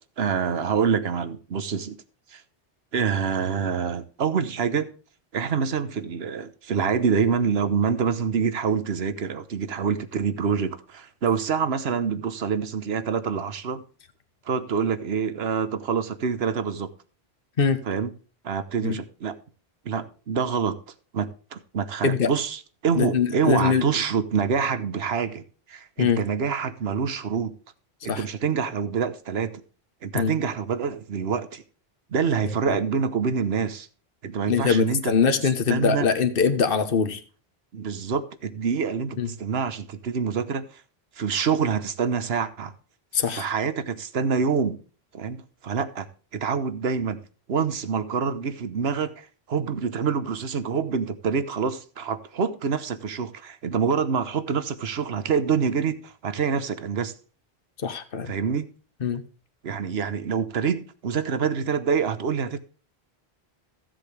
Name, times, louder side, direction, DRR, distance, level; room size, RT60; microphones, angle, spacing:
voice 1, 0.2-2.0 2.3-2.4 2.9-4.9 5.3-13.8 14.5-16.9 17.9-18.1 18.4-19.4 19.8-20.8 21.1-27.6 28.0-29.6 30.0-31.6 32.1-33.9 34.2-35.2 35.7-36.1 37.7-40.8 41.2-42.7 43.3-44.8 45.1-46.1 46.3-47.2 47.5-57.1 58.3-58.7 59.6-62.6, right 6 dB, 75° right, 1.2 m, -26 dB
voice 2, 22.9-23.8 26.0-26.2 28.1-28.2 30.1-30.3 32.7-32.8 34.5-37.2 39.2-39.3 43.1-43.5 57.8-58.3 59.0-59.2, left 6 dB, 60° left, 1.3 m, -22 dB
15.0 x 7.7 x 3.3 m
omnidirectional pair, 1.1 m